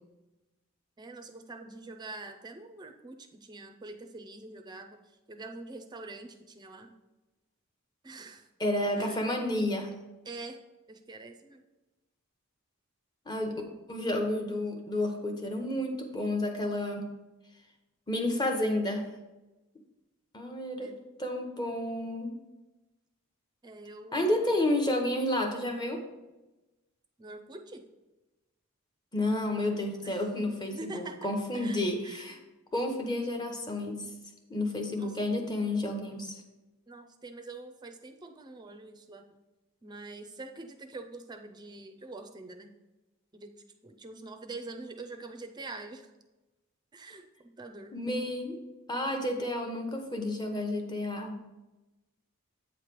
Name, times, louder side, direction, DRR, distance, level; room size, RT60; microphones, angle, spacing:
voice 1, 1.0-6.9 8.0-8.5 9.0-9.3 10.2-10.6 10.9-11.6 20.7-21.1 23.6-24.4 27.2-27.8 30.0-30.3 30.7-31.2 31.5-32.2 35.0-35.2 36.9-39.2 39.8-42.7 43.3-43.5 43.8-46.1 46.9-48.0, right 2 dB, 20° right, 5 dB, 0.5 m, -45 dB
voice 2, 8.6-9.9 13.3-13.6 13.9-17.1 18.1-19.1 20.3-22.3 24.1-26.0 29.1-32.4 32.7-34.1 34.5-36.4 47.9-48.6 48.9-51.4, left 1 dB, 20° left, 3 dB, 0.8 m, -31 dB
8.3 x 3.2 x 5.9 m, 1.1 s
head